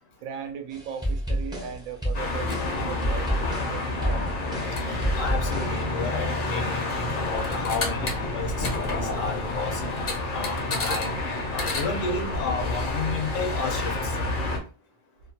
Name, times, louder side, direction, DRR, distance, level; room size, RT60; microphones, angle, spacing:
voice 1, 0.2-4.3, right 7 dB, 85° right, 6 dB, 1.0 m, -38 dB
sound 1, 0.7-5.8, equal, 5° right, 0.3 m, -30 dB
sound 2, 2.1-14.6, left 2 dB, 50° left, 0.6 m, -29 dB
voice 2, 5.1-9.8 10.3-11.2 11.5-14.1, left 4 dB, 70° left, 3 dB, 1.0 m, -32 dB
2.7 x 2.2 x 2.7 m, 0.37 s
omnidirectional pair, 1.4 m